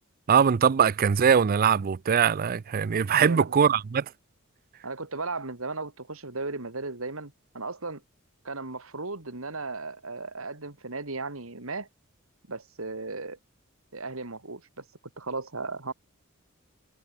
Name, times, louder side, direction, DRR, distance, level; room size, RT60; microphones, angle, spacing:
voice 1, 0.3-4.0, right 7 dB, 45° right, 0.4 m, -22 dB
voice 2, 3.2-3.7 4.8-8.0 8.4-11.9 12.5-13.4 13.9-15.9, right 3 dB, 75° right, 2.9 m, -36 dB
head